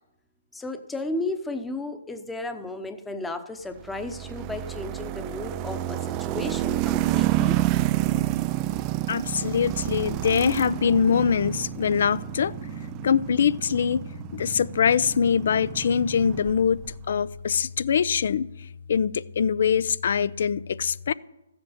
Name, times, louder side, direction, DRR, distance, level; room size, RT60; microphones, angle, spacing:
voice 1, 0.5-7.6, left 2 dB, 5° left, 0.9 m, -34 dB
sound 1, 3.8-17.0, right 15 dB, 25° right, 0.3 m, -29 dB
voice 2, 8.0-8.4 9.1-12.5 13.0-14.0 14.3-18.5 18.9-21.1, left 7 dB, 60° left, 0.5 m, -23 dB
14.0 x 7.9 x 7.3 m
hypercardioid pair, 140°, 0 cm